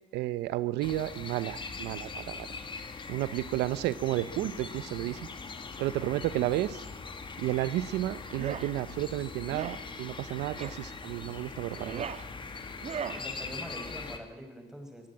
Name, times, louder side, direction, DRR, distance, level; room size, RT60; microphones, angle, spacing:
voice 1, 0.1-2.5 3.1-5.2 5.8-6.8 7.4-12.1, right 15 dB, 85° right, 15 dB, 0.9 m, -32 dB
sound 1, 0.8-14.2, left 4 dB, 30° left, 2.5 m, -42 dB
sound 2, 8.3-8.7 9.5-9.8 10.6-10.8 11.6-12.3 12.8-13.2, right 7 dB, 40° right, 1.8 m, -38 dB
voice 2, 13.1-15.1, equal, 5° right, 4 dB, 5.5 m, -44 dB
24.0 x 16.5 x 8.6 m, 1.1 s
cardioid pair, 110°, 17 cm